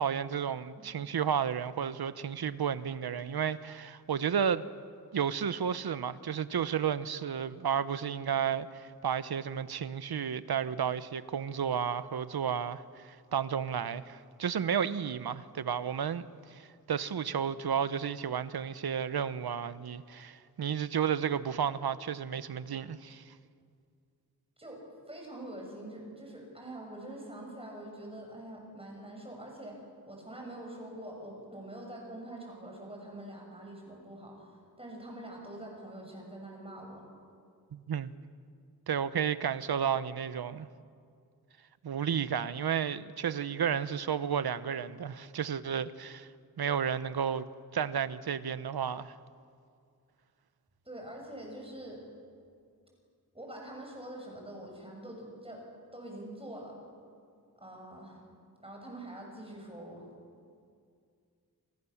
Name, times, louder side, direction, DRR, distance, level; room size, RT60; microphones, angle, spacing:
voice 1, 0.0-4.6 5.1-23.3 37.7-38.1 38.9-40.7 41.8-46.3 46.6-47.4 47.7-49.2, right 8 dB, 75° right, 1.0 m, -32 dB
voice 2, 24.6-29.8 30.1-37.1 50.8-52.0 53.3-55.6 55.9-56.8 57.6-58.2 58.6-60.1, right 1 dB, 15° right, 7.1 m, -45 dB
29.5 x 26.0 x 7.2 m
wide cardioid pair, 150°, 38 cm